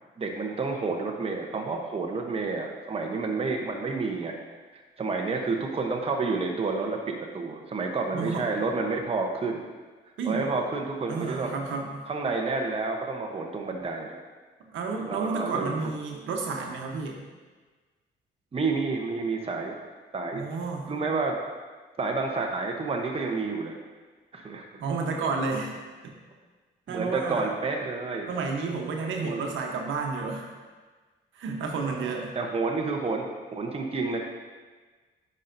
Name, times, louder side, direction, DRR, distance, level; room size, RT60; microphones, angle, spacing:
voice 1, 0.2-4.3 4.7-9.6 10.2-11.5 12.1-14.2 15.1-15.7 18.5-19.7 20.1-20.4 20.9-21.4 22.0-23.8 24.3-24.7 26.9-28.3 29.2-29.5 31.9-33.3 33.5-34.2, right 3 dB, 30° right, 1 dB, 0.9 m, -29 dB
voice 2, 8.1-8.5 10.2-10.5 11.1-12.1 14.6-17.2 20.3-20.9 24.8-25.7 26.0-26.1 26.9-27.5 28.3-30.5 31.3-32.4, right 4 dB, 75° right, 1 dB, 1.0 m, -31 dB
9.3 x 5.5 x 2.6 m, 1.4 s
cardioid pair, 90°, 20 cm